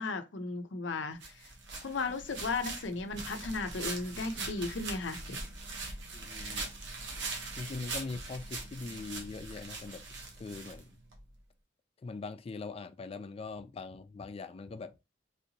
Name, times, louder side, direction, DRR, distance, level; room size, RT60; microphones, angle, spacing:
voice 1, 0.0-1.5 1.8-5.4, left 3 dB, 85° left, 0.6 m, -35 dB
sound 1, 1.2-11.2, right 3 dB, 75° right, 0.9 m, -41 dB
voice 2, 6.1-6.7 7.5-11.0 12.0-15.0, left 3 dB, 35° left, 0.3 m, -42 dB
3.3 x 2.8 x 2.7 m
head